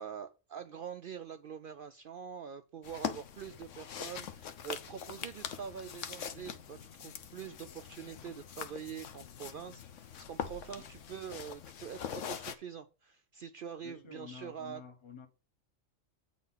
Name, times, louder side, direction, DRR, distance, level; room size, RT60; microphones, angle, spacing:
voice 1, 0.0-14.8, right 8 dB, 65° right, 0.5 m, -45 dB
sound 1, 2.8-12.5, left 8 dB, 75° left, 1.1 m, -43 dB
voice 2, 13.8-15.3, left 6 dB, 25° left, 0.9 m, -49 dB
8.4 x 4.2 x 5.5 m
omnidirectional pair, 1.3 m